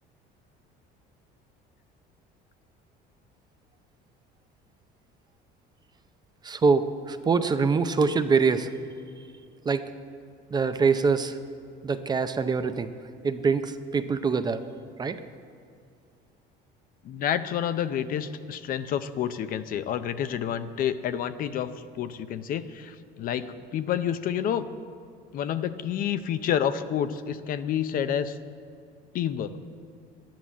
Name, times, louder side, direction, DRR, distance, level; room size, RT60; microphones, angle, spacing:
voice 1, 6.4-8.7 9.7-9.8 10.5-11.4 11.8-12.9 13.2-14.6 15.0-15.2, right 5 dB, 20° right, 9 dB, 0.6 m, -24 dB
voice 2, 17.0-24.7 25.3-28.4 29.1-29.6, left 9 dB, 50° left, 12 dB, 0.6 m, -29 dB
12.5 x 10.5 x 7.3 m, 2.3 s
cardioid pair, 145°, 19 cm